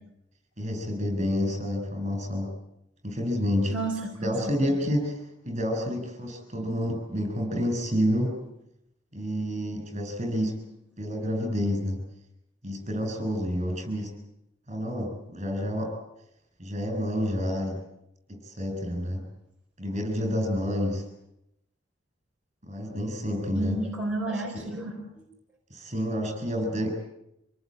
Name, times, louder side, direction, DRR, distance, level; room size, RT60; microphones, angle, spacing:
voice 1, 0.6-2.6 3.0-3.7 4.2-5.2 5.4-8.4 9.1-10.6 11.0-12.0 12.6-14.2 14.7-15.9 16.6-17.8 18.3-19.2 19.8-21.0 22.6-23.8 24.2-24.7 25.7-26.9, equal, 35° right, 5 dB, 7.4 m, -29 dB
voice 2, 3.7-4.3 4.7-4.8 9.6-10.0 23.5-25.2, right 2 dB, 5° right, -4 dB, 4.6 m, -32 dB
26.5 x 19.0 x 9.1 m, 0.82 s
head